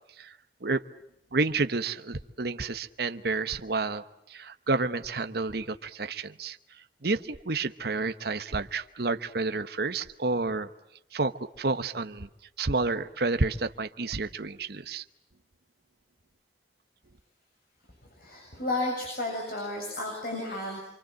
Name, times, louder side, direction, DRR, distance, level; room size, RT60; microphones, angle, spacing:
voice 1, 1.3-6.6 7.0-10.7 11.1-12.3 12.6-15.0, right 3 dB, 60° right, 9 dB, 1.1 m, -30 dB
voice 2, 18.1-20.8, left 2 dB, 55° left, 1 dB, 7.7 m, -32 dB
28.0 x 25.0 x 7.7 m, 0.86 s
head